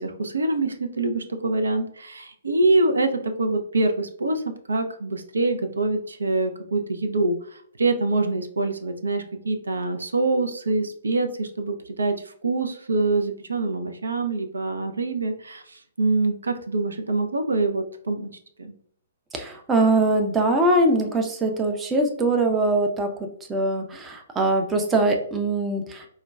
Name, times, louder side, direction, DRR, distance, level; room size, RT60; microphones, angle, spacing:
voice 1, 0.0-4.4 4.7-18.3 18.6-18.7, right 2 dB, 70° right, 7 dB, 0.4 m, -25 dB
voice 2, 19.3-23.1 23.5-26.1, right 2 dB, 15° right, 4 dB, 0.5 m, -22 dB
4.5 x 2.2 x 2.2 m, 0.64 s
figure-of-eight pair, 120°, 0 cm